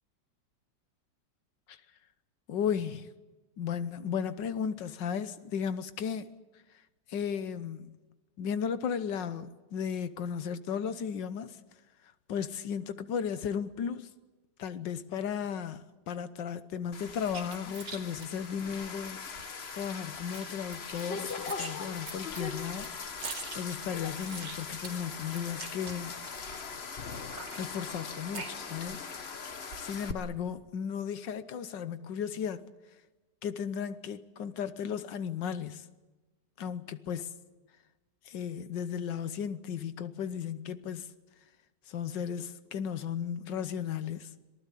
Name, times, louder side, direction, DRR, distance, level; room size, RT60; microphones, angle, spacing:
voice 1, 2.5-3.1 3.6-6.3 7.1-8.0 8.4-11.6 12.3-14.1 14.6-23.2 23.5-26.1 27.6-29.0 29.8-32.6 33.4-35.9 36.6-37.3 38.2-41.1 41.9-44.3, left 7 dB, 80° left, 1.7 m, -35 dB
sound 1, 16.9-30.1, left 5 dB, 40° left, 1.3 m, -40 dB
sound 2, 17.0-19.5 19.8-19.9 20.2-21.0 21.3-26.7 27.1-29.2 29.5-30.1, right 4 dB, 75° right, 3.2 m, -44 dB
26.0 x 19.5 x 8.4 m
omnidirectional pair, 1.9 m